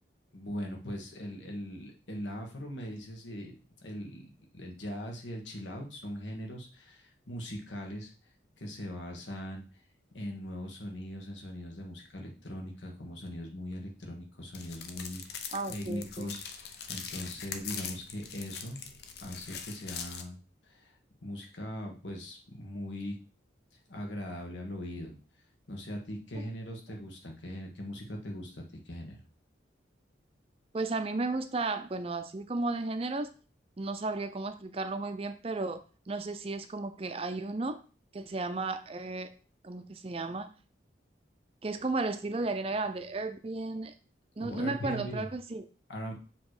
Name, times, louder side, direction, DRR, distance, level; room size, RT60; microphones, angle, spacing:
voice 1, 0.3-3.5 3.8-8.1 8.6-9.6 10.1-18.9 19.2-23.2 23.9-25.2 25.7-29.2 44.4-45.3 45.9-46.1, equal, 80° left, 1 dB, 1.5 m, -40 dB
sound 1, 14.5-20.2, left 6 dB, 55° left, 0.6 m, -42 dB
voice 2, 15.5-16.4 26.3-26.4 30.7-33.3 33.8-37.8 38.1-39.3 39.6-40.5 41.6-43.9 44.4-45.6, right 3 dB, 30° right, 10 dB, 0.4 m, -34 dB
7.2 x 3.0 x 4.8 m, 0.36 s
head